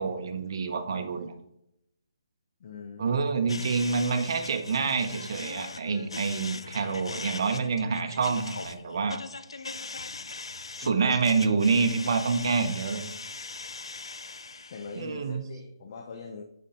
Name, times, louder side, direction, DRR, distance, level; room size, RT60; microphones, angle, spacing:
voice 1, 0.0-1.3 3.0-9.2 10.8-13.0 14.9-15.4, right 5 dB, 55° right, 6 dB, 1.0 m, -27 dB
voice 2, 2.6-3.7 10.8-11.2 14.7-16.4, left 5 dB, 45° left, 3 dB, 0.7 m, -42 dB
sound 1, 3.5-15.1, left 3 dB, 85° left, 0.5 m, -40 dB
6.6 x 5.5 x 3.8 m, 0.80 s
hypercardioid pair, 150°, 3 cm